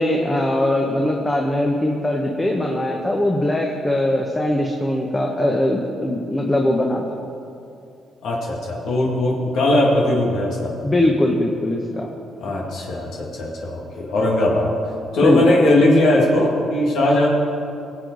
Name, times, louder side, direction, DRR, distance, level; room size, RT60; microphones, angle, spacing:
voice 1, 0.0-7.0 10.8-12.1 15.2-15.4, left 1 dB, 15° left, 0 dB, 1.1 m, -21 dB
voice 2, 8.2-10.7 12.4-14.7 15.1-17.3, left 1 dB, 75° left, -3 dB, 2.1 m, -19 dB
18.0 x 7.8 x 4.0 m, 2.6 s
cardioid pair, 90°, 0 cm